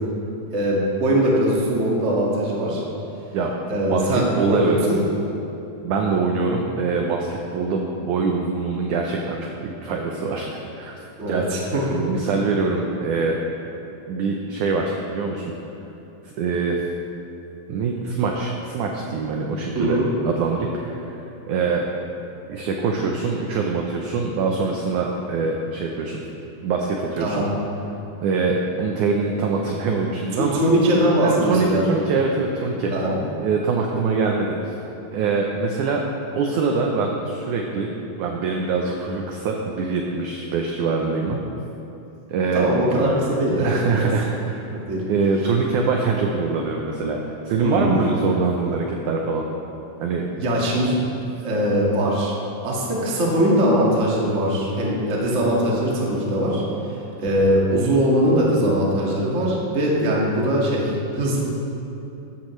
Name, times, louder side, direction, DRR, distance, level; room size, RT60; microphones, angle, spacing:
voice 1, 0.5-2.8 3.7-5.0 11.2-12.0 19.7-20.1 27.2-27.5 30.4-32.0 32.9-33.2 42.5-44.1 44.7-45.0 47.6-48.0 50.4-51.0 51.4-52.3 52.6-61.4, right 1 dB, 35° right, -4 dB, 1.1 m, -21 dB
voice 2, 3.9-4.8 5.8-9.5 9.8-10.5 10.8-11.0 11.3-11.5 11.9-13.4 14.1-15.4 16.4-16.8 17.7-21.8 22.5-26.2 26.6-27.5 28.2-30.6 31.2-32.9 33.4-34.8 35.1-36.0 36.4-37.9 38.2-41.4 42.3-42.7 43.6-44.7 45.1-47.2 47.4-49.5 50.0-50.2, right 4 dB, 80° right, 1 dB, 1.8 m, -24 dB
14.0 x 12.0 x 3.2 m, 2.9 s
omnidirectional pair, 4.4 m